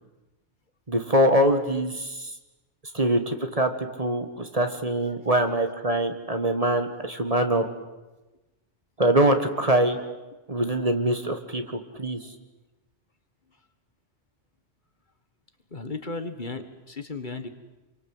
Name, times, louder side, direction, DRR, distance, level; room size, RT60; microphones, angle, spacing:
voice 1, 0.9-2.3 2.9-7.6 9.0-10.0 10.5-12.2, right 1 dB, 30° right, 6 dB, 1.8 m, -23 dB
voice 2, 15.7-17.5, left 3 dB, 45° left, 8 dB, 1.7 m, -35 dB
27.5 x 24.0 x 7.9 m, 1.1 s
omnidirectional pair, 1.2 m